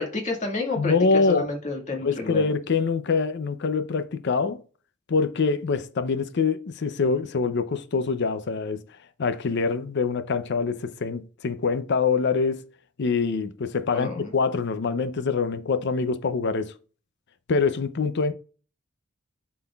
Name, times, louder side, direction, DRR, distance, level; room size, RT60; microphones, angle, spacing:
voice 1, 0.0-2.4 13.9-14.3, left 3 dB, 35° left, 1.7 m, -30 dB
voice 2, 0.8-1.5 2.0-4.6 5.1-8.8 9.2-12.7 13.0-16.7 17.5-18.3, left 4 dB, 55° left, 0.5 m, -25 dB
11.5 x 3.9 x 2.3 m
head